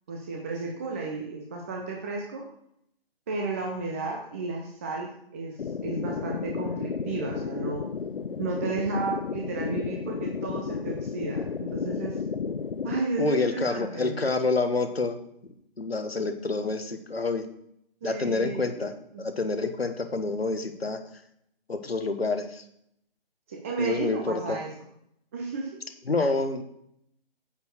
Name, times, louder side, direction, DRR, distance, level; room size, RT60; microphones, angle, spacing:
voice 1, 0.1-2.4 3.3-7.9 8.4-12.2 12.8-14.2 18.0-18.7 19.1-19.2 23.5-24.7 25.3-25.8, right 3 dB, 15° right, 0 dB, 0.6 m, -33 dB
sound 1, 5.6-13.0, left 6 dB, 65° left, 0.6 m, -32 dB
voice 2, 13.2-15.2 15.8-17.4 18.0-21.0 21.7-22.6 23.8-24.6 26.1-26.6, left 3 dB, 80° left, 7 dB, 1.4 m, -28 dB
9.4 x 4.4 x 6.5 m, 0.73 s
figure-of-eight pair, 140°, 30 cm